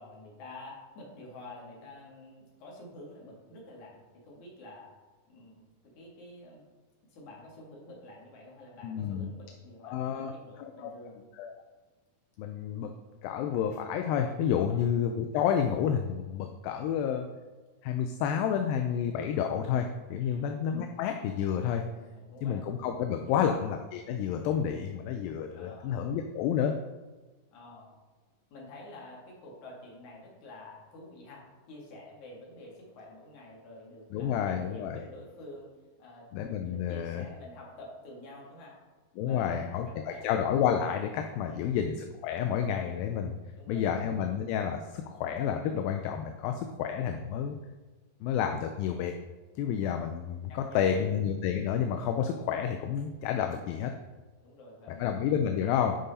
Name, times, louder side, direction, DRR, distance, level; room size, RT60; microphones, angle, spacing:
voice 1, 0.0-4.9 5.3-6.6 7.0-11.2 14.7-14.9 20.2-20.6 22.1-22.6 23.2-23.5 25.5-26.1 27.5-27.9 28.5-36.3 36.6-38.8 39.2-40.3 41.5-41.8 43.6-44.0 50.5-51.1 54.4-55.1 55.6-55.8, left 2 dB, 55° left, -3 dB, 3.3 m, -49 dB
voice 2, 8.8-9.3 9.8-10.3 10.6-10.9 11.4-11.5 12.4-12.9 13.2-17.3 17.8-21.9 22.4-26.8 34.1-35.0 36.3-37.3 39.2-43.4 43.7-47.6 48.2-49.1 49.6-53.9 55.0-56.0, left 8 dB, 80° left, 5 dB, 2.2 m, -30 dB
11.5 x 5.4 x 4.1 m, 1.3 s
omnidirectional pair, 4.4 m